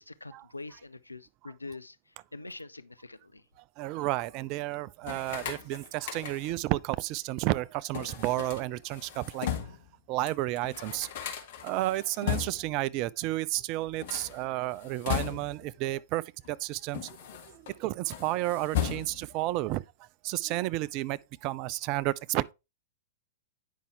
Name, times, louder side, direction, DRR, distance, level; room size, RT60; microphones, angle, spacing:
voice 1, 0.0-2.0 2.3-3.4, left 3 dB, 85° left, 0.5 m, -44 dB
voice 2, 3.8-9.5 10.1-11.1 11.6-17.2 17.8-19.8 20.2-22.5, right 16 dB, 35° right, 0.4 m, -31 dB
sound 1, 5.0-6.7 7.9-9.9 10.3-10.4 10.6-12.8 13.9-15.7 16.4-17.7 18.0-19.4, left 9 dB, 50° left, 1.8 m, -36 dB
9.3 x 5.5 x 3.4 m
figure-of-eight pair, 105°, 0 cm